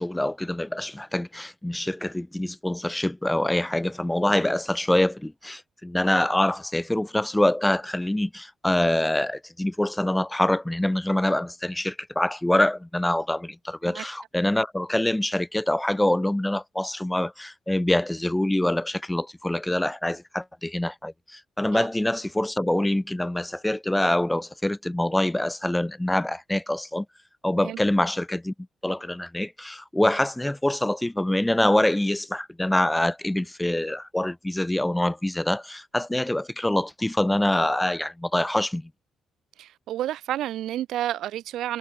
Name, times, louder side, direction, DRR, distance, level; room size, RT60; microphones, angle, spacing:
voice 1, 0.0-27.1 27.4-28.5 28.8-38.9, left 1 dB, 10° left, 4.2 m, -25 dB
voice 2, 39.6-41.8, right 13 dB, 80° right, 6.5 m, -30 dB
cardioid pair, 90°, 0 cm